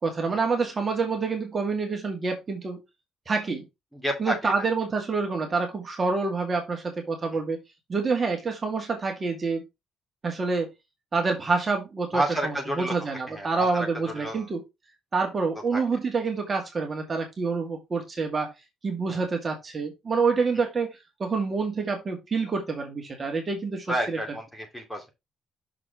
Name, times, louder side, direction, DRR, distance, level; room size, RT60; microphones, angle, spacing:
voice 1, 0.0-2.8 3.3-3.7 4.2-7.6 7.9-9.6 10.2-10.7 11.1-14.6 15.1-18.5 18.8-24.2, right 4 dB, 30° right, 2.1 m, -27 dB
voice 2, 3.9-4.5 7.3-7.4 12.1-12.9 13.3-14.5 15.7-15.8 19.1-19.2 23.9-25.1, right 1 dB, 5° left, 2.6 m, -30 dB
6.5 x 4.7 x 4.6 m
cardioid pair, 130°, 0 cm